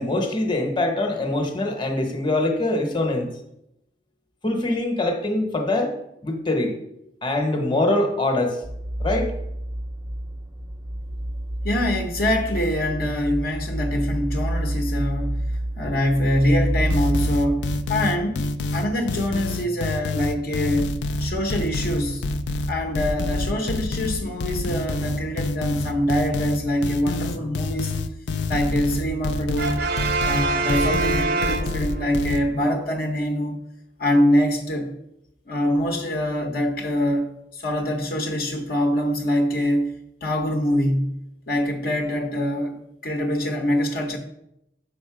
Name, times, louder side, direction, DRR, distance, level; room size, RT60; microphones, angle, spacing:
voice 1, 0.0-3.3 4.4-5.9 6.2-6.8 7.2-8.6 9.0-9.3 15.8-15.9, left 2 dB, 25° left, 4 dB, 1.0 m, -23 dB
sound 1, 8.6-18.2, right 1 dB, 15° right, 0.4 m, -28 dB
voice 2, 11.6-15.4 15.8-18.4 18.7-22.2 22.7-28.0 28.5-29.8 30.2-33.6 34.0-34.9 35.5-39.9 40.2-41.2 41.5-44.2, equal, 55° left, 1 dB, 0.8 m, -24 dB
sound 2, 16.9-32.4, left 2 dB, 80° left, 0.5 m, -27 dB
Brass instrument, 29.6-32.2, right 3 dB, 60° right, 0.6 m, -25 dB
6.3 x 5.3 x 4.8 m, 0.81 s
head